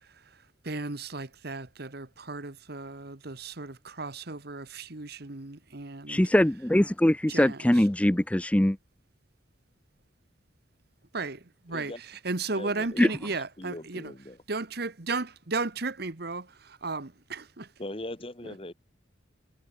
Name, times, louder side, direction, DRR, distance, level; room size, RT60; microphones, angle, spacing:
voice 1, 0.0-6.2 7.3-7.9 11.1-14.1 14.5-17.7 18.4-18.7, right 3 dB, 55° right, 1.5 m, -35 dB
voice 2, 6.1-8.8 13.0-13.1, left 1 dB, 5° left, 0.4 m, -22 dB
voice 3, 12.5-14.4 17.8-18.7, left 1 dB, 30° left, 2.0 m, -40 dB
head